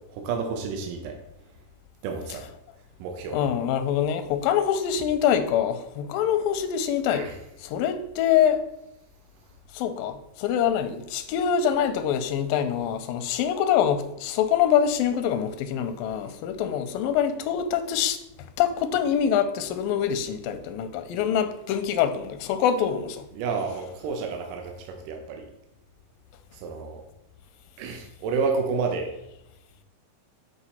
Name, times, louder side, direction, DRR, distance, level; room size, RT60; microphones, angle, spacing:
voice 1, 0.1-1.2 2.0-2.4 3.0-3.5 7.1-7.3 23.3-25.5 26.5-27.0 27.8-29.1, right 5 dB, 75° right, 2.3 m, -30 dB
voice 2, 3.3-7.3 7.6-8.6 9.7-18.2 18.6-23.3, left 9 dB, 90° left, 2.3 m, -25 dB
7.9 x 4.7 x 4.2 m
omnidirectional pair, 4.0 m